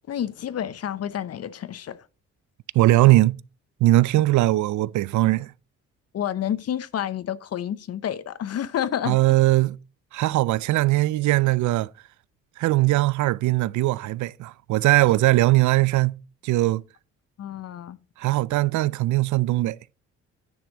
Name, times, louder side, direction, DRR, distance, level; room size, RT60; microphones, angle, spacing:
voice 1, 0.1-2.0 4.2-4.3 6.1-9.2 17.4-18.0, left 10 dB, 55° left, 0.8 m, -29 dB
voice 2, 2.7-3.4 3.8-5.5 9.1-9.8 10.1-11.9 12.6-16.1 16.4-16.8 18.2-19.8, right 17 dB, 75° right, 0.4 m, -20 dB
10.0 x 6.0 x 3.9 m
cardioid pair, 90°, 30 cm